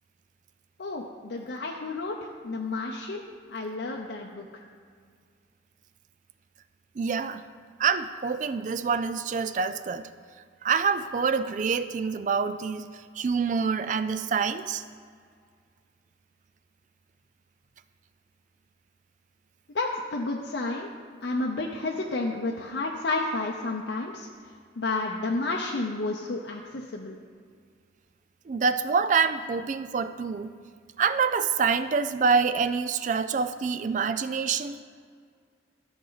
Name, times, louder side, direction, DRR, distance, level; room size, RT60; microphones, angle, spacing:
voice 1, 0.8-2.2 2.4-3.2 3.5-4.4 19.7-20.9 21.2-24.3 24.8-27.2, left 2 dB, 70° left, -1 dB, 0.7 m, -31 dB
voice 2, 7.0-7.4 7.8-10.1 10.6-12.9 13.2-14.8 28.5-30.5 31.0-34.8, right 5 dB, 40° right, 12 dB, 0.3 m, -26 dB
13.5 x 6.3 x 3.9 m, 2.1 s
head